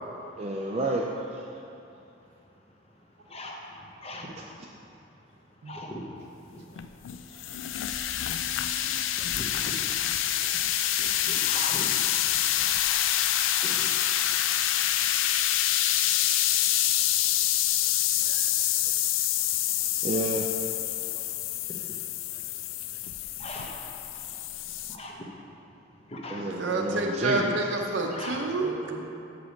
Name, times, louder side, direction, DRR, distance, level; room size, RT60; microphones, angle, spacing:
voice 1, 0.4-1.6 7.3-7.4 10.4-10.7 18.2-18.4 20.0-20.5 26.3-27.5, right 2 dB, 35° right, -1 dB, 0.3 m, -31 dB
voice 2, 1.5-20.1 20.9-22.0 22.3-24.3 24.8-26.9 28.1-28.5, left 1 dB, 30° left, 0 dB, 0.7 m, -45 dB
sound 1, 6.8-25.0, left 12 dB, 85° left, 0.3 m, -27 dB
voice 3, 26.6-29.1, right 2 dB, 70° right, 2 dB, 0.7 m, -29 dB
6.8 x 5.0 x 5.2 m, 2.8 s
head